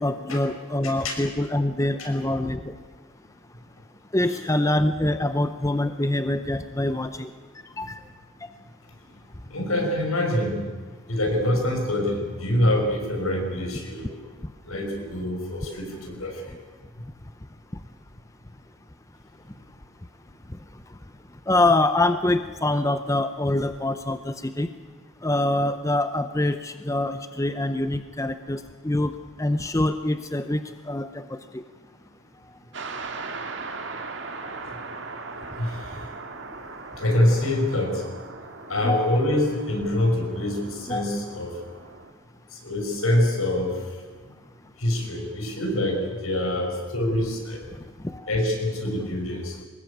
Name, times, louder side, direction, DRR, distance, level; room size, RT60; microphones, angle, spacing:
voice 1, 0.0-2.7 4.1-7.3 7.8-7.9 21.5-24.7 25.2-29.1 29.4-30.6 30.9-31.6 38.8-39.2 40.9-41.0 48.0-48.3, left 1 dB, 15° left, 10 dB, 0.6 m, -25 dB
voice 2, 9.5-10.7 11.1-14.1 14.6-16.5 35.6-35.9 37.0-38.0 38.7-41.5 42.5-43.7 44.8-47.6 48.3-49.5, left 1 dB, 80° left, 2 dB, 6.3 m, -25 dB
sound 1, 32.7-42.1, right 3 dB, 55° right, 2.1 m, -39 dB
24.0 x 20.0 x 8.7 m, 1.4 s
head